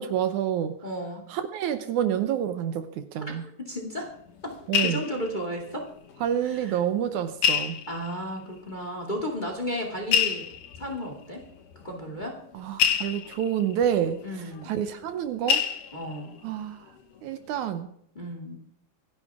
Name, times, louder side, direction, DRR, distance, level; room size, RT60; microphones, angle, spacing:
voice 1, 0.0-0.7 1.3-3.4 4.7-5.0 6.2-7.8 12.5-14.2 14.7-15.6 16.4-16.8 17.2-17.9, right 9 dB, 75° right, 10 dB, 2.1 m, -28 dB
voice 2, 0.8-1.2 3.4-4.1 4.4-5.9 6.4-6.8 7.9-11.4 11.8-12.4 14.2-14.7 15.9-16.3 18.1-18.6, equal, 15° left, 2 dB, 2.1 m, -34 dB
sound 1, 4.0-6.4 6.6-6.7 7.4-8.4 9.2-9.3 10.0-15.2 15.5-16.4 16.9-17.2 17.4-17.6, left 8 dB, 75° left, 2.9 m, -29 dB
26.5 x 10.5 x 3.6 m, 0.70 s
omnidirectional pair, 3.7 m